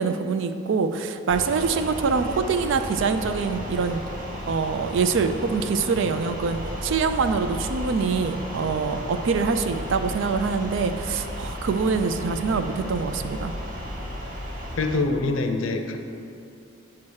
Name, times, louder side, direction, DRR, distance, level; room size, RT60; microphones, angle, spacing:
voice 1, 0.0-4.0 4.5-13.5, right 5 dB, 65° right, 9 dB, 0.4 m, -25 dB
sound 1, 1.3-15.0, equal, 45° right, 0.9 m, -34 dB
voice 2, 14.8-16.0, left 3 dB, 80° left, 5 dB, 0.6 m, -24 dB
8.5 x 2.9 x 6.3 m, 2.6 s
head